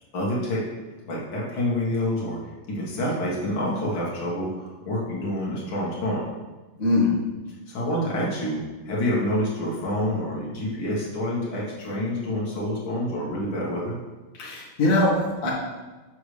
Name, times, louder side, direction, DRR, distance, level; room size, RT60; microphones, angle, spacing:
voice 1, 0.1-0.6 1.1-2.4 2.7-6.3 7.7-8.6 8.9-14.0, left 1 dB, 65° left, -5 dB, 2.3 m, -27 dB
voice 2, 6.8-7.1 14.4-15.5, left 2 dB, 40° left, -6 dB, 1.9 m, -22 dB
7.1 x 6.5 x 3.2 m, 1.2 s
omnidirectional pair, 2.4 m